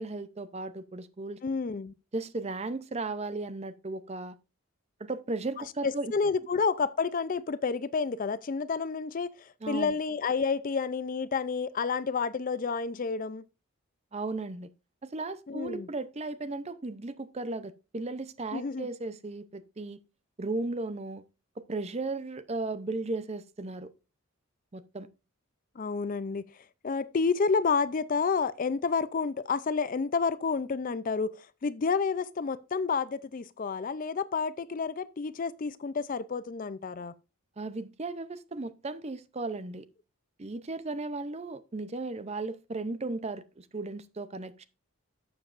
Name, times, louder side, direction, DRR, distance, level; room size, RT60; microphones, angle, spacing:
voice 1, 0.0-1.4 2.1-4.4 5.0-6.1 9.6-10.0 14.1-14.7 15.0-20.0 20.4-21.2 21.7-23.9 24.7-25.1 37.6-39.8 40.4-44.6, right 3 dB, 30° right, 0.5 m, -35 dB
voice 2, 1.4-1.9 5.8-9.3 9.7-13.4 15.5-15.9 18.5-18.9 25.8-26.5 26.8-31.3 31.6-37.1, left 5 dB, 40° left, 0.4 m, -29 dB
11.5 x 7.2 x 2.5 m
head